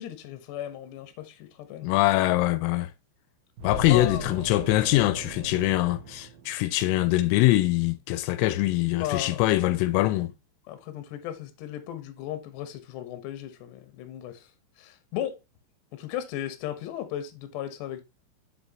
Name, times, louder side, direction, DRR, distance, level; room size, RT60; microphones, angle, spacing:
voice 1, 0.0-1.9 3.9-4.2 9.0-9.4 10.7-14.5 14.8-15.4 15.9-18.0, left 12 dB, 70° left, 3.0 m, -35 dB
voice 2, 1.8-2.9 3.6-10.3, left 17 dB, 85° left, 3.2 m, -23 dB
sound 1, 3.6-7.0, right 1 dB, 60° right, 2.7 m, -38 dB
7.8 x 6.3 x 2.9 m
omnidirectional pair, 5.9 m